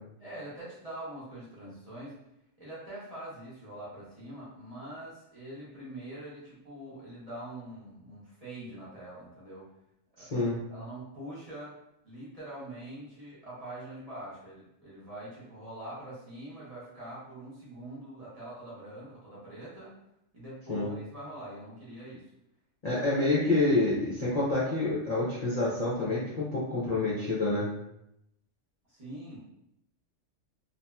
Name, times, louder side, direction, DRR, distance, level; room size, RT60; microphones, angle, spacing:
voice 1, 0.2-2.2 2.6-9.7 10.1-11.7 12.0-19.9 20.3-22.3 22.9-23.1 28.9-29.4, right 1 dB, 35° right, -9 dB, 0.8 m, -44 dB
voice 2, 10.2-10.6 20.7-20.9 22.8-27.7, left 2 dB, 45° left, -8 dB, 0.5 m, -28 dB
2.7 x 2.7 x 2.2 m, 0.81 s
omnidirectional pair, 1.4 m